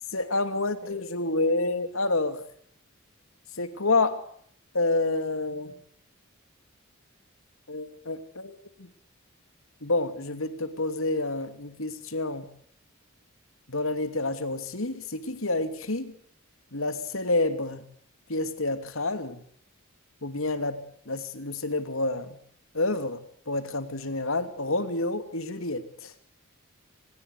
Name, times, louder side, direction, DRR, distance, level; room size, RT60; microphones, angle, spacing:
voice 1, 0.1-2.4 3.6-4.2 4.7-5.7 7.7-8.9 9.8-12.5 13.7-16.2 16.7-17.8 18.3-19.4 20.2-22.4 22.7-26.1, left 2 dB, 70° left, 10 dB, 3.0 m, -29 dB
26.0 x 20.5 x 8.5 m, 0.64 s
head